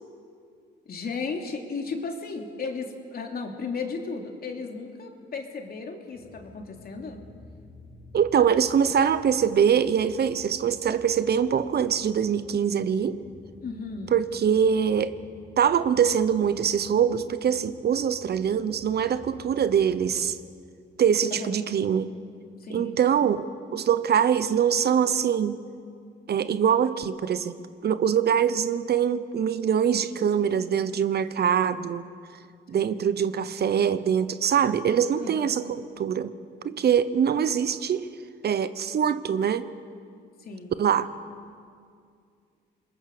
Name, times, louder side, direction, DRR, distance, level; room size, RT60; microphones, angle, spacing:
voice 1, 0.8-7.2 13.6-14.1 21.3-21.6 22.6-23.0 32.7-33.0 35.2-35.6 40.4-40.8, left 4 dB, 50° left, 3 dB, 3.3 m, -35 dB
sound 1, 6.1-20.2, left 1 dB, 80° left, 5.8 m, -52 dB
voice 2, 8.1-13.2 14.1-15.1 15.6-20.4 21.0-22.1 22.7-25.6 26.3-27.6 27.8-32.0 32.7-35.6 36.0-36.3 36.6-38.1 38.4-39.7 40.8-41.1, right 8 dB, 55° right, 13 dB, 1.0 m, -23 dB
27.5 x 21.5 x 6.8 m, 2.2 s
cardioid pair, 90°, 20 cm